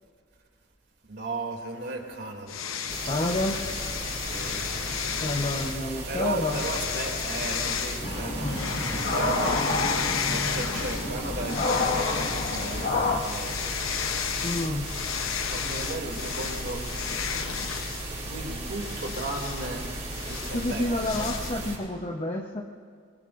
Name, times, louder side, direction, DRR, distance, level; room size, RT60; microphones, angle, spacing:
voice 1, 1.0-2.6 4.2-4.9 6.1-9.6 10.3-13.6 15.5-16.8 18.3-19.8 20.2-20.9 21.1-21.5, right 2 dB, 55° right, 1 dB, 2.6 m, -36 dB
sound 1, 2.5-5.9 6.4-8.1 8.5-11.1 11.4-21.5, left 7 dB, 80° left, 0.8 m, -33 dB
sound 2, 2.9-21.8, right 2 dB, 35° right, 5.1 m, -36 dB
voice 2, 3.1-3.6 5.2-6.6 8.4-8.6 14.4-14.9 20.5-22.6, left 1 dB, 30° left, 0 dB, 0.9 m, -29 dB
sound 3, 8.0-13.2, left 2 dB, 55° left, 1.7 m, -28 dB
25.0 x 22.0 x 2.6 m, 2.2 s
head